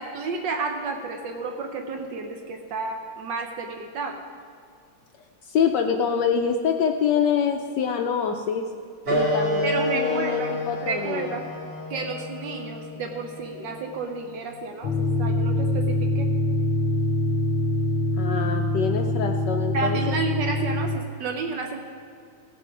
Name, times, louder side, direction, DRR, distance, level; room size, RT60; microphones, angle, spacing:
voice 1, 0.0-4.2 9.6-11.4 11.9-16.3 19.7-21.8, right 4 dB, 70° right, 3 dB, 1.4 m, -31 dB
voice 2, 5.4-8.7 9.1-11.4 18.2-20.0, left 7 dB, 70° left, 4 dB, 1.1 m, -25 dB
sound 1, 9.0-14.2, left 1 dB, 45° right, 3.4 m, -29 dB
sound 2, 14.8-21.0, left 1 dB, 85° left, 1.5 m, -24 dB
17.0 x 6.9 x 4.7 m, 2.2 s
omnidirectional pair, 2.2 m